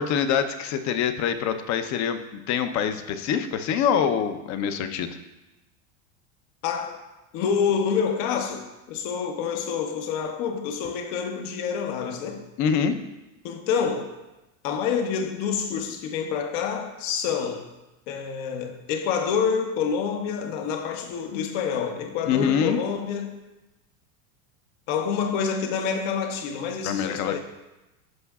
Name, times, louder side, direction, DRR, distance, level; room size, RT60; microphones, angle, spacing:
voice 1, 0.0-5.2 12.6-13.0 22.3-22.8 26.8-27.4, left 7 dB, 45° left, 0.8 m, -25 dB
voice 2, 6.6-7.0 7.3-12.4 13.4-14.1 14.6-17.7 18.1-23.4 24.9-27.4, left 6 dB, 60° left, 1.1 m, -27 dB
14.5 x 5.3 x 2.4 m
hypercardioid pair, 100°, 40 cm